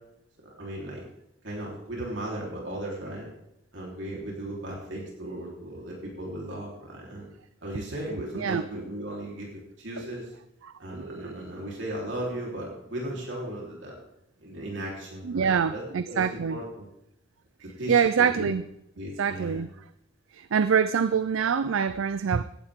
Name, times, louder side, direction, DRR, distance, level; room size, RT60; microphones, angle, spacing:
voice 1, 0.6-1.0 1.4-3.3 3.7-7.3 7.6-10.3 10.8-14.0 14.4-16.9 17.8-18.5 19.0-19.6, right 1 dB, 70° right, -3 dB, 3.7 m, -36 dB
voice 2, 10.6-11.4 15.2-16.6 17.9-18.6 19.2-19.7 20.3-22.4, right 6 dB, 90° right, 14 dB, 0.5 m, -25 dB
16.5 x 12.0 x 3.7 m, 0.82 s
head